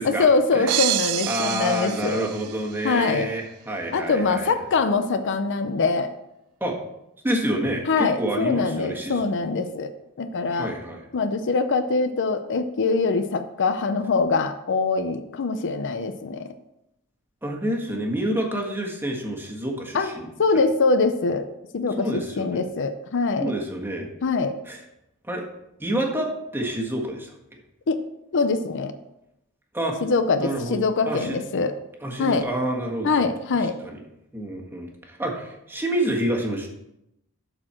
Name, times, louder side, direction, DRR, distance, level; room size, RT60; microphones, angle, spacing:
voice 1, 0.0-2.2 2.8-3.3 3.9-6.1 7.9-9.9 10.2-10.7 11.1-16.5 19.9-20.1 20.4-21.5 21.7-23.5 24.2-24.5 27.9-28.0 28.3-28.9 30.0-31.7 32.2-32.5 33.0-33.8, left 4 dB, 55° left, 9 dB, 0.6 m, -23 dB
sound 1, 0.7-2.9, right 14 dB, 80° right, 0.4 m, -28 dB
voice 2, 1.3-4.5 6.6-6.8 7.2-9.2 10.5-11.0 17.4-20.3 22.0-22.6 23.4-24.1 24.6-24.8 25.2-25.4 25.8-27.4 29.7-30.0 30.4-30.8 31.0-31.4 32.0-33.1 33.8-34.0 34.3-36.7, right 1 dB, 10° right, 0 dB, 1.5 m, -28 dB
12.0 x 4.4 x 4.3 m, 0.85 s
head